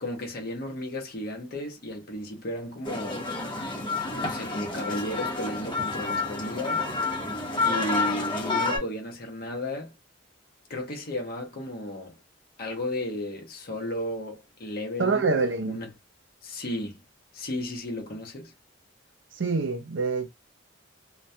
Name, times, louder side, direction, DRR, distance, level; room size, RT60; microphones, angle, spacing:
voice 1, 0.0-3.2 4.1-6.9 7.6-9.9 10.7-12.2 12.6-15.3 15.7-15.9 16.4-17.0 17.3-18.5, left 1 dB, 50° left, 0.8 m, -34 dB
sound 1, 2.8-8.8, left 3 dB, 25° left, 0.8 m, -29 dB
voice 2, 15.0-15.8 19.4-20.3, right 4 dB, 65° right, 0.5 m, -25 dB
2.2 x 2.2 x 2.6 m
head